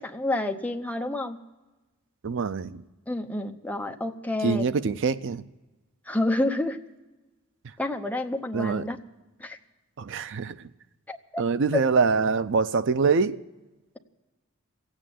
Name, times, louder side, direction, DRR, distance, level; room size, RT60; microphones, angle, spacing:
voice 1, 0.0-1.4 3.1-4.7 6.1-6.8 7.8-9.0 9.4-9.6 11.1-11.4 11.7-11.8, left 1 dB, 5° left, 0.8 m, -29 dB
voice 2, 2.2-2.8 4.4-5.4 8.5-8.8 10.0-10.6 11.4-13.4, right 5 dB, 60° right, 0.5 m, -24 dB
16.0 x 8.9 x 9.0 m
head